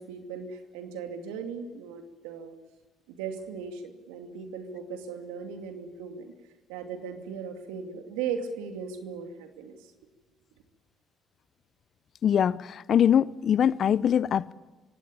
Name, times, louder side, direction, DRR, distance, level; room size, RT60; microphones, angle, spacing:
voice 1, 0.0-2.6 3.1-6.3 6.7-9.9, right 6 dB, 85° right, 2.5 m, -37 dB
voice 2, 12.2-14.5, left 9 dB, 60° left, 0.7 m, -23 dB
25.0 x 17.0 x 8.7 m
hypercardioid pair, 55°, 0 cm